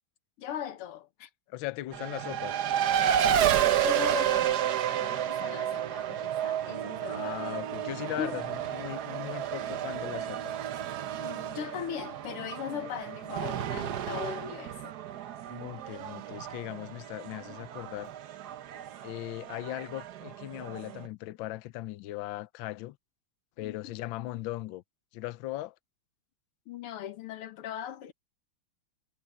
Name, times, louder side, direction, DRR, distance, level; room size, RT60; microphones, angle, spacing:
voice 1, 0.4-1.3 3.8-7.4 8.2-8.4 11.2-15.0 23.6-24.0 26.7-28.1, left 10 dB, 90° left, 2.1 m, -39 dB
voice 2, 1.5-2.6 7.1-8.4 8.7-10.5 15.5-18.1 19.0-23.0 23.6-24.8 25.1-25.7, left 16 dB, 70° left, 1.3 m, -38 dB
Race car auto racing, 1.9-21.1, right 10 dB, 60° right, 1.2 m, -31 dB
omnidirectional pair, 2.4 m